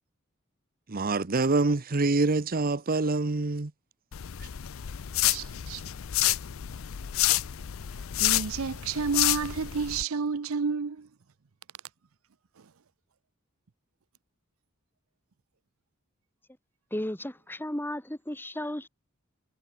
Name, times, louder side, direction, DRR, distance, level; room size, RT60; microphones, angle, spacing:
voice 1, 0.9-3.7, right 3 dB, 45° right, 0.9 m, -25 dB
sound 1, 4.1-10.0, left 15 dB, 70° left, 0.5 m, -29 dB
voice 2, 5.2-5.8 8.2-11.1, right 5 dB, 90° right, 0.7 m, -30 dB
voice 3, 16.9-18.9, left 1 dB, 10° left, 2.1 m, -34 dB
head